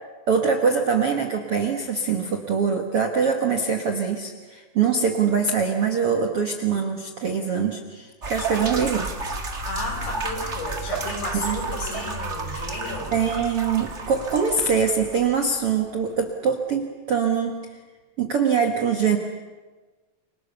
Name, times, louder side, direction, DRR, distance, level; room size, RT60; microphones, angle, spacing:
voice 1, 0.3-9.1 11.3-11.6 13.1-17.5 18.2-19.2, right 6 dB, 60° right, 3 dB, 1.5 m, -23 dB
sound 1, 8.2-15.8, right 3 dB, 85° right, 0.6 m, -32 dB
voice 2, 9.7-13.3, left 2 dB, 80° left, 2 dB, 7.8 m, -33 dB
30.0 x 25.0 x 7.0 m, 1.3 s
omnidirectional pair, 4.9 m